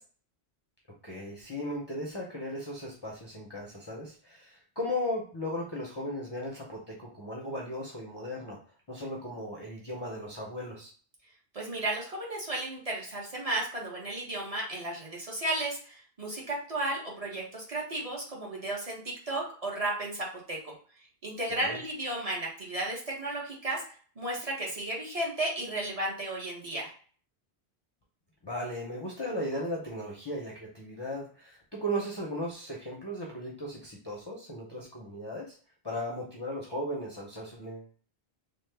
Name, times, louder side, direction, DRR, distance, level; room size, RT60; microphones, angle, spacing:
voice 1, 1.0-8.6 8.9-10.9 21.5-21.8 28.4-35.6 35.8-37.9, equal, 35° left, -3 dB, 0.4 m, -36 dB
voice 2, 11.5-19.0 19.3-20.7 21.2-23.8 24.2-26.9, right 1 dB, 40° right, -3 dB, 0.8 m, -34 dB
3.1 x 2.0 x 3.2 m, 0.43 s
omnidirectional pair, 1.1 m